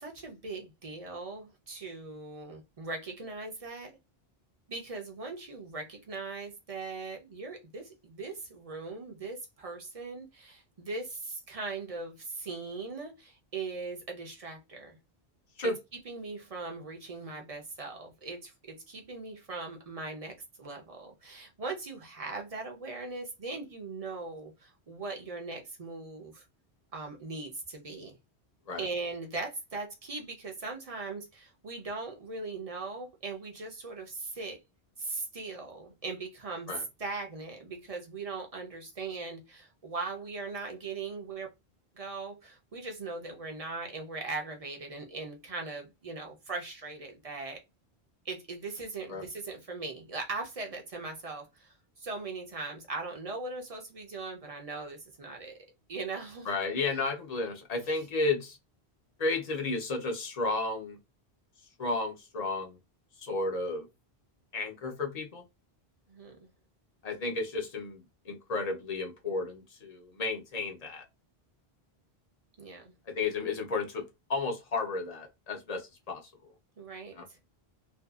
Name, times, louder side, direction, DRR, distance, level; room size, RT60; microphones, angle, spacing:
voice 1, 0.0-3.9 4.7-15.0 15.6-15.7 16.0-26.4 26.9-28.2 28.8-34.6 35.0-41.5 41.9-47.6 48.2-51.7 52.0-55.6 55.9-56.5 56.9-57.0 66.1-66.5 72.6-72.9 76.8-77.1, right 3 dB, 40° right, 0.6 m, -39 dB
voice 2, 56.5-58.6 59.2-61.0 61.8-62.8 63.2-63.9 64.5-65.4 67.0-71.0 73.1-74.0 74.3-76.2 77.2-77.3, left 3 dB, 45° left, 0.6 m, -32 dB
2.6 x 2.3 x 2.3 m
omnidirectional pair, 1.1 m